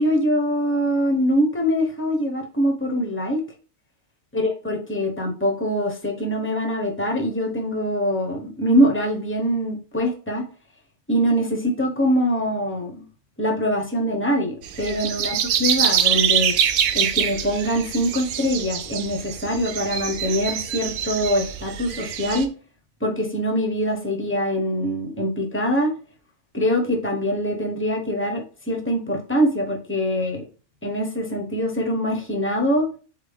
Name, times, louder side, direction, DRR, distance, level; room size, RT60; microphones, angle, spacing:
voice 1, 0.0-3.4 4.3-10.4 11.1-13.0 13.4-16.5 16.9-22.5 23.0-25.9 26.5-30.4 30.8-32.9, equal, 10° left, 2 dB, 0.7 m, -23 dB
sound 1, 14.6-22.5, right 9 dB, 75° right, 1.0 m, -24 dB
4.1 x 3.5 x 3.5 m, 0.37 s
omnidirectional pair, 1.5 m